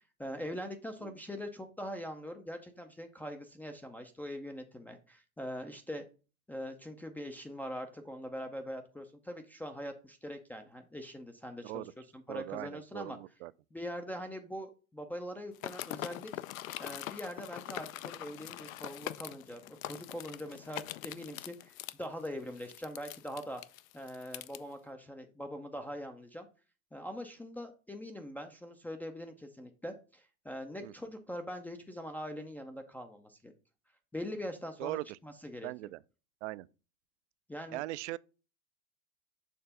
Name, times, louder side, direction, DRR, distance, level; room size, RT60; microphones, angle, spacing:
voice 1, 0.2-6.0 6.5-11.9 12.1-13.2 13.7-16.3 16.8-23.6 23.9-26.5 26.9-33.5 34.1-35.7 37.5-37.8, equal, 5° left, 0.4 m, -42 dB
voice 2, 12.3-13.5 30.8-30.9 34.8-35.2 35.6-36.0 36.4-36.7 37.7-38.2, right 18 dB, 55° right, 0.5 m, -40 dB
sound 1, 15.5-24.6, left 14 dB, 70° left, 0.5 m, -43 dB
6.8 x 3.3 x 5.6 m
hypercardioid pair, 105°, 42 cm